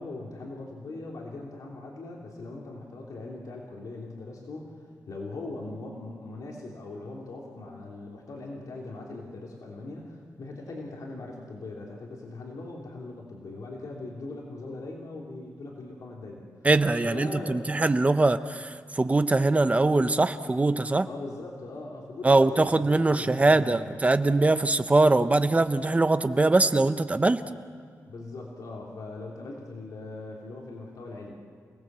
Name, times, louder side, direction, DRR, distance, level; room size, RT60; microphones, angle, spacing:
voice 1, 0.0-16.7 17.0-17.6 20.7-20.8 21.1-23.9 28.0-31.3, left 2 dB, 75° left, -2 dB, 3.3 m, -40 dB
voice 2, 16.6-21.1 22.2-27.4, right 2 dB, 25° right, 10 dB, 0.9 m, -22 dB
28.5 x 19.0 x 7.6 m, 2.1 s
wide cardioid pair, 120°, 6 cm